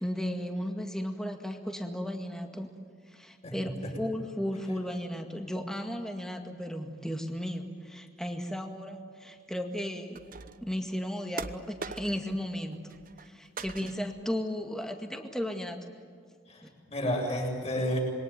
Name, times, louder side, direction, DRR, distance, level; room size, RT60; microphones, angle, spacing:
voice 1, 0.0-2.7 3.1-3.7 4.0-10.2 10.6-12.8 13.2-15.9 16.6-16.7, equal, 5° left, 4 dB, 2.0 m, -35 dB
voice 2, 3.4-3.9 16.5-18.0, equal, 35° left, 0 dB, 7.5 m, -32 dB
sound 1, 10.1-10.7 11.4-12.4 12.7-13.3 13.6-14.2, right 4 dB, 50° right, 1.0 m, -41 dB
27.5 x 22.5 x 9.4 m, 2.2 s
head